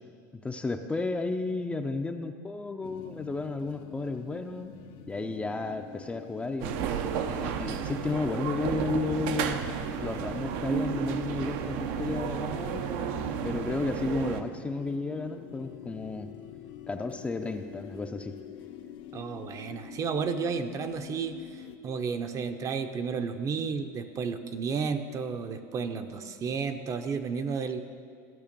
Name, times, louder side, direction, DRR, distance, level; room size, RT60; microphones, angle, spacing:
voice 1, 0.4-4.7 5.1-6.9 7.3-9.7 10.0-12.9 13.4-16.3 16.9-18.3, left 3 dB, 15° left, 6 dB, 0.5 m, -33 dB
sound 1, 2.8-21.8, left 10 dB, 60° left, 0.8 m, -46 dB
sound 2, 6.6-14.4, right 8 dB, 70° right, 0.7 m, -32 dB
sound 3, 8.5-14.0, right 4 dB, 85° right, 1.1 m, -42 dB
voice 2, 19.1-27.8, right 5 dB, 35° right, 8 dB, 0.7 m, -32 dB
14.0 x 6.5 x 5.3 m, 2.2 s
supercardioid pair, 120°, 10 cm